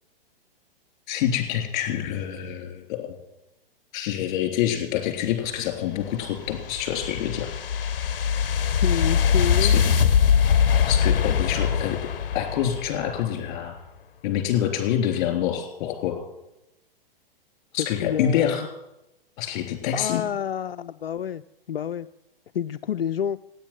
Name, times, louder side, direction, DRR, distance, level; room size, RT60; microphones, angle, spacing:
voice 1, 1.1-3.0 3.9-7.5 9.6-9.8 10.9-12.0 12.3-13.7 14.2-16.2 17.7-18.7 19.4-20.2, left 10 dB, 40° left, 5 dB, 3.5 m, -26 dB
sound 1, 6.0-13.2, left 7 dB, 65° left, 0.8 m, -22 dB
voice 2, 8.8-9.7 17.8-18.6 19.9-21.4 21.7-22.1 22.5-23.4, left 9 dB, 85° left, 12 dB, 0.5 m, -28 dB
16.0 x 9.5 x 7.5 m, 0.91 s
figure-of-eight pair, 115°, 29 cm